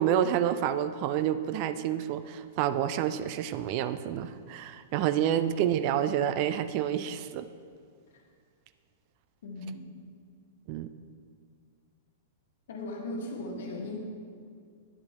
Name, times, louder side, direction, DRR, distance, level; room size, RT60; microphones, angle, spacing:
voice 1, 0.0-7.5 10.7-10.9, right 10 dB, 45° right, 12 dB, 0.3 m, -28 dB
voice 2, 9.4-9.9 12.7-14.0, left 2 dB, 65° left, 1 dB, 1.3 m, -37 dB
9.7 x 8.0 x 3.3 m, 2.1 s
figure-of-eight pair, 105°, 0 cm